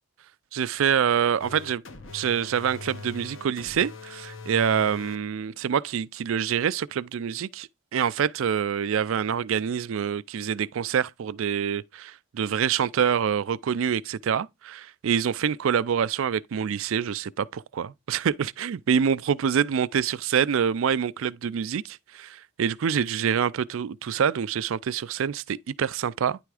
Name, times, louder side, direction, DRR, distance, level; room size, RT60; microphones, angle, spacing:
voice 1, 0.5-1.8 2.1-26.4, right 7 dB, 70° right, 0.4 m, -26 dB
sound 1, 1.4-5.2, left 3 dB, 60° left, 0.9 m, -42 dB
9.9 x 3.4 x 4.8 m
head